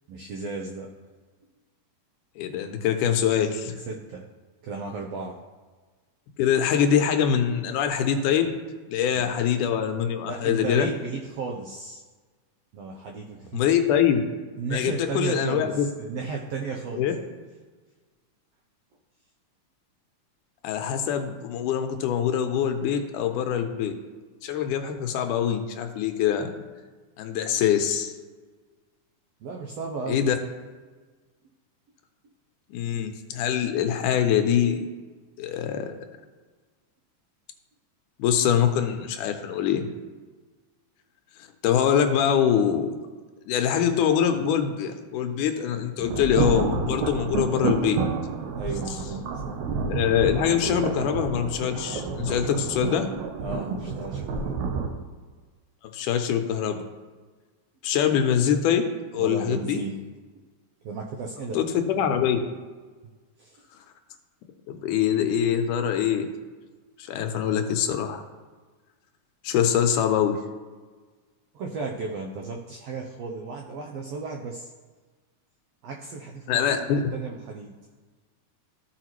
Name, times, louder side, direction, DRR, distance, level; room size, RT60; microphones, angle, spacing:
voice 1, 0.1-0.9 3.9-4.3 4.6-5.4 9.1-9.3 10.2-12.0 12.7-13.6 14.6-17.2 29.4-30.2 48.5-49.3 53.4-54.6 59.2-60.0 60.3-60.4 60.8-61.6 63.4-63.7 71.5-74.7 75.8-77.7, right 4 dB, 90° right, 1 dB, 1.4 m, -34 dB
voice 2, 2.4-3.8 6.4-8.5 8.9-10.9 13.5-14.2 14.7-15.9 17.0-17.1 20.6-23.9 24.4-26.5 27.2-28.1 30.1-30.4 32.7-34.9 35.4-36.0 38.2-39.9 41.6-43.0 43.5-48.0 49.8-53.1 55.9-56.8 57.8-58.9 59.1-59.8 61.5-62.4 64.7-66.3 67.0-68.2 69.4-70.4 76.5-77.0, left 8 dB, 80° left, 6 dB, 2.2 m, -24 dB
sound 1, 46.0-54.9, right 5 dB, 75° right, 2.1 m, -29 dB
14.5 x 4.9 x 3.0 m, 1.4 s
omnidirectional pair, 3.7 m